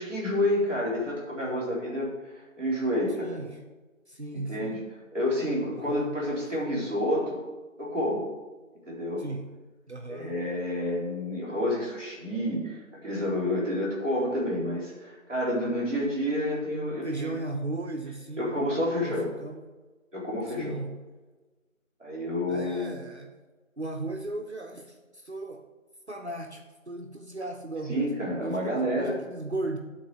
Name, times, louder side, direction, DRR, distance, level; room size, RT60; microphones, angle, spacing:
voice 1, 0.0-3.4 4.5-4.8 5.1-7.4 7.8-8.3 8.8-9.2 10.1-17.3 18.4-19.3 20.1-20.8 22.0-22.9 27.9-29.2, left 1 dB, 5° left, -20 dB, 2.8 m, -29 dB
voice 2, 3.1-3.6 4.1-4.8 5.7-6.2 9.2-9.5 9.9-10.4 17.0-18.7 19.0-19.6 20.5-21.0 22.5-23.3 23.8-25.7 26.1-29.8, right 2 dB, 55° right, 3 dB, 0.9 m, -36 dB
10.5 x 4.1 x 7.7 m, 1.2 s
figure-of-eight pair, 170°, 41 cm